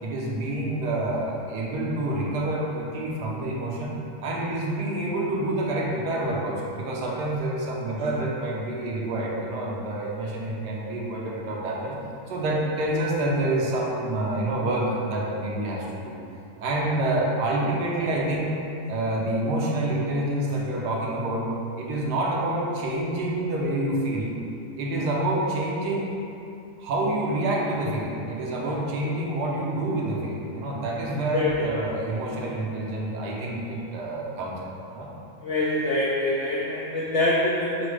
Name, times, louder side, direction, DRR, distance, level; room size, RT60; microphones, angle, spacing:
voice 1, 0.0-3.9 4.2-12.0 12.3-16.2 16.6-18.6 18.9-21.5 21.8-24.3 24.8-26.1 26.8-35.1, right 1 dB, 80° right, -3 dB, 1.2 m, -27 dB
voice 2, 31.3-31.7 35.4-37.9, left 1 dB, 90° left, -5 dB, 0.6 m, -25 dB
4.8 x 2.0 x 4.7 m, 2.7 s
omnidirectional pair, 1.9 m